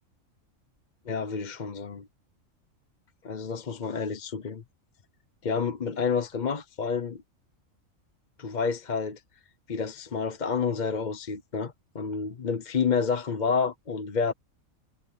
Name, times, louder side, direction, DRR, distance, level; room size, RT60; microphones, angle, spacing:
voice 1, 1.1-2.1 3.2-4.6 5.4-7.2 8.4-9.2 9.7-14.3, left 5 dB, 40° left, 0.9 m, -29 dB
omnidirectional pair, 1.4 m